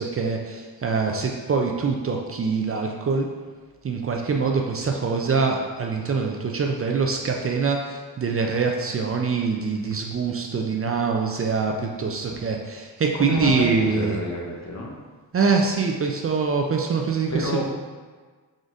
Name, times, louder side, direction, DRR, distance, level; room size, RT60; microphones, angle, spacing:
voice 1, 0.0-3.3 3.8-14.2 15.3-17.6, right 5 dB, 35° right, 2 dB, 0.5 m, -24 dB
voice 2, 13.2-14.9 17.3-17.6, left 1 dB, 45° left, -1 dB, 1.0 m, -29 dB
5.0 x 3.7 x 2.6 m, 1.4 s
cardioid pair, 75°, 39 cm